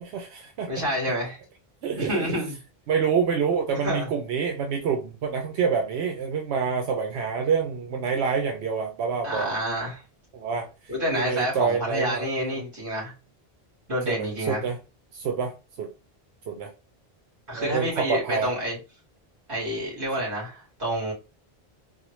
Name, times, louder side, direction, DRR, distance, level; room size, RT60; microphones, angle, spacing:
voice 1, 0.1-0.7 1.8-2.4 2.9-9.5 10.3-10.7 11.2-12.6 14.0-14.8 15.1-15.9 16.5-16.7 17.5-18.5, right 6 dB, 90° right, 0.9 m, -27 dB
voice 2, 0.7-1.4 2.0-2.6 3.8-4.1 9.2-10.0 10.9-13.1 13.9-14.6 17.5-18.8 19.5-21.1, equal, 55° right, 2.4 m, -28 dB
4.0 x 2.2 x 3.0 m
omnidirectional pair, 1.1 m